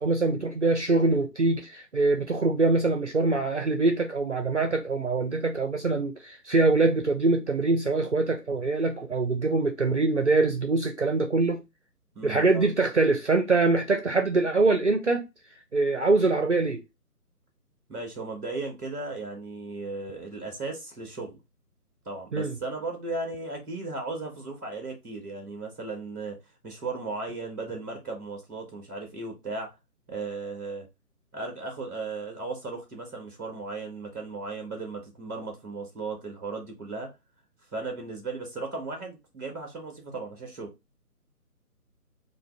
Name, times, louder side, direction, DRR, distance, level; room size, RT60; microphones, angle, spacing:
voice 1, 0.0-11.6 12.2-15.2 15.7-16.8 22.3-22.5, right 3 dB, 50° right, 0.5 m, -24 dB
voice 2, 12.1-12.7 17.9-21.4 22.0-26.4 26.6-29.7 30.1-30.9 31.3-37.1 37.7-40.7, right 3 dB, 10° right, 0.8 m, -36 dB
3.7 x 2.4 x 3.3 m
figure-of-eight pair, 150°, 47 cm